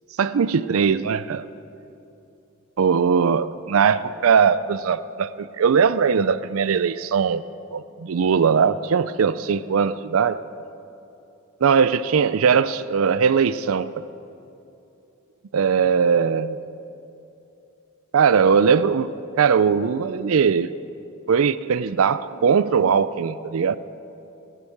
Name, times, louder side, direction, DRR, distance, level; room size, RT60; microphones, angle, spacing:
voice 1, 0.2-1.4 2.8-7.4 7.7-10.4 11.6-14.0 15.5-16.6 18.1-19.1 19.4-20.7 21.3-23.8, right 6 dB, 85° right, 16 dB, 0.4 m, -20 dB
16.5 x 12.0 x 7.3 m, 2.8 s
head